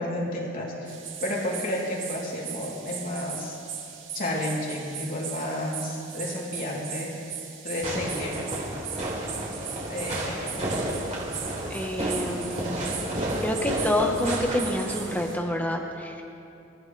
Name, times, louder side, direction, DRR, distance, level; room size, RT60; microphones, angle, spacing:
voice 1, 0.0-3.6 4.1-7.1 7.6-8.4 9.9-10.8, left 1 dB, 45° left, -3 dB, 3.2 m, -31 dB
sound 1, 0.9-15.4, right 8 dB, 65° right, 2.2 m, -39 dB
Fireworks, 7.8-15.2, right 1 dB, 35° right, 3.5 m, -32 dB
voice 2, 11.7-12.9 13.4-16.2, left 1 dB, 10° left, 1 dB, 1.2 m, -28 dB
28.0 x 14.5 x 3.4 m, 2.7 s
head